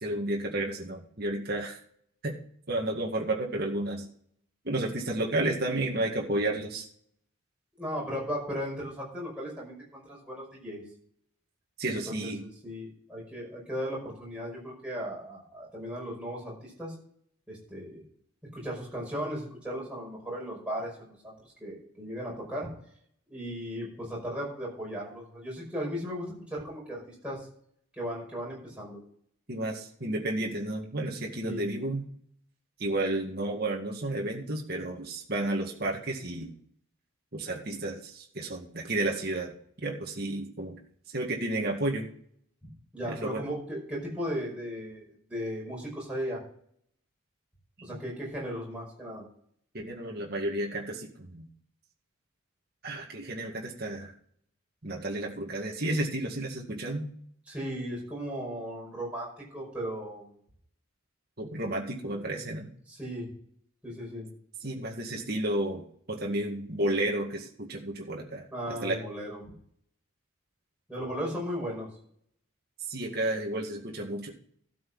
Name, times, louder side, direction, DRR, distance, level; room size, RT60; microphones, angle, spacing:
voice 1, 0.0-1.8 2.2-2.3 2.7-4.1 4.6-6.9 11.8-12.4 29.5-32.0 32.8-36.5 37.3-39.5 39.8-40.8 41.1-42.1 43.0-43.4 47.9-48.0 49.7-51.5 52.8-54.1 54.8-57.1 61.4-62.7 64.6-65.8 66.1-69.0 72.9-74.3, right 1 dB, 45° right, 0 dB, 2.0 m, -32 dB
voice 2, 7.8-10.8 11.9-16.9 17.5-18.0 18.5-21.3 21.6-22.7 23.3-27.5 27.9-29.0 31.4-31.6 42.9-46.4 47.8-49.2 57.5-60.4 62.0-62.4 62.9-63.3 63.8-64.3 68.5-69.4 70.9-71.9, equal, 5° right, -4 dB, 5.4 m, -36 dB
12.5 x 6.3 x 6.3 m, 0.62 s
head